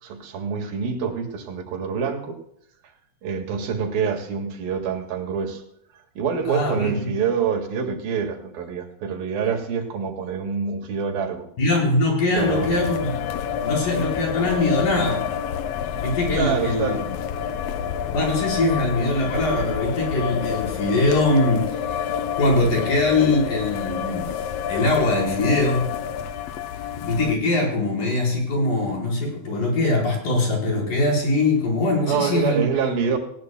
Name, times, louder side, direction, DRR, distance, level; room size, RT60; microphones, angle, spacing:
voice 1, 0.0-2.4 3.2-5.6 6.2-11.5 12.4-12.7 16.3-17.0 32.1-33.2, right 6 dB, 85° right, 3 dB, 3.7 m, -26 dB
voice 2, 6.5-7.1 11.6-15.2 16.0-17.1 18.1-22.0 22.4-24.3 24.7-25.9 27.0-32.6, left 2 dB, 65° left, -2 dB, 6.0 m, -22 dB
sound 1, 12.4-27.4, left 8 dB, 85° left, 1.4 m, -28 dB
19.0 x 17.5 x 2.2 m, 0.72 s
omnidirectional pair, 4.0 m